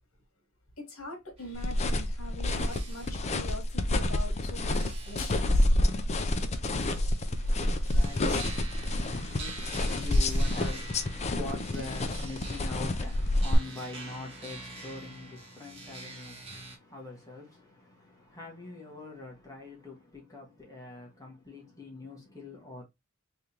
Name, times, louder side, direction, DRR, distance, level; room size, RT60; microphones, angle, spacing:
voice 1, 0.8-5.7 7.6-7.7 10.1-10.2, left 1 dB, 80° left, 1.6 m, -43 dB
sound 1, 1.4-16.8, right 2 dB, 30° right, 1.5 m, -47 dB
sound 2, 1.5-13.5, left 1 dB, 30° left, 0.5 m, -28 dB
voice 2, 7.4-22.8, left 3 dB, 15° left, 1.5 m, -44 dB
3.6 x 3.3 x 2.8 m
head